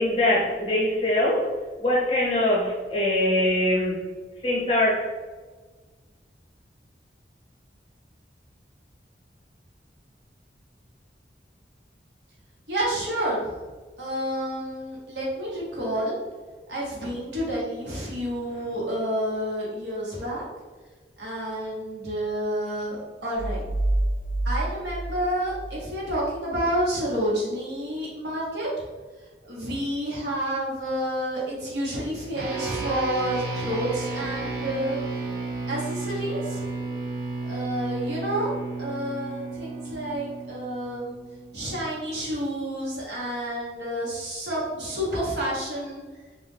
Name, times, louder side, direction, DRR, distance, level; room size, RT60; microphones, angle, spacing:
voice 1, 0.0-1.5 1.8-4.0 4.4-5.1, left 1 dB, 30° left, -5 dB, 0.7 m, -23 dB
voice 2, 12.7-13.5 14.0-16.2 16.7-20.4 21.2-23.6 24.4-28.9 29.5-35.0 35.7-36.6 37.5-38.5 38.8-41.1 41.5-46.0, right 1 dB, 75° right, -5 dB, 0.9 m, -29 dB
sound 1, 23.4-26.3, right 1 dB, 80° left, 0.4 m, -28 dB
sound 2, 32.4-42.0, right 3 dB, 55° right, 0.5 m, -33 dB
2.2 x 2.1 x 3.1 m, 1.4 s
head